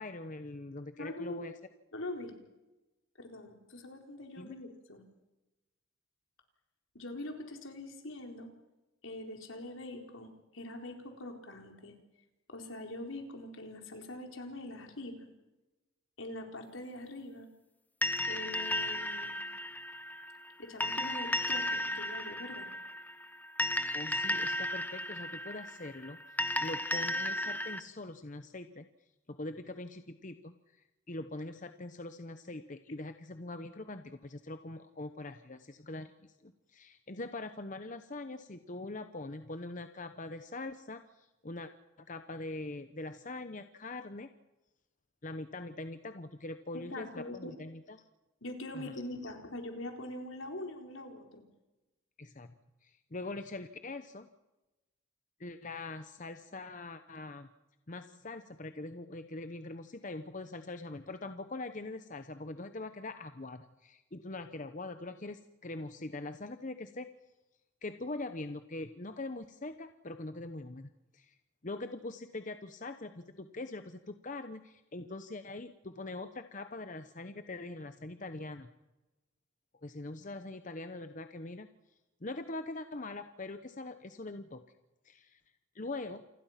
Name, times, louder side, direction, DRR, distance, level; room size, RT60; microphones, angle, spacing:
voice 1, 0.0-1.5 4.4-4.5 23.9-26.2 26.6-28.9 29.3-30.5 31.1-41.7 42.0-44.3 45.2-48.0 48.7-48.9 49.2-49.3 52.2-52.5 52.8-54.3 55.4-57.5 57.9-67.1 67.8-71.4 71.6-78.7 79.8-81.7 82.2-84.6 85.0-85.4 85.7-86.2, left 2 dB, 40° left, 9 dB, 0.9 m, -43 dB
voice 2, 1.0-1.4 1.9-2.4 3.2-5.0 6.9-8.5 9.0-12.0 12.5-15.3 16.2-17.5 18.3-19.5 20.6-22.7 46.9-47.5 48.4-51.4, left 1 dB, 75° left, 3 dB, 4.2 m, -43 dB
sound 1, 18.0-27.8, left 1 dB, 10° left, 0.9 m, -34 dB
28.0 x 21.0 x 5.9 m, 1.0 s
head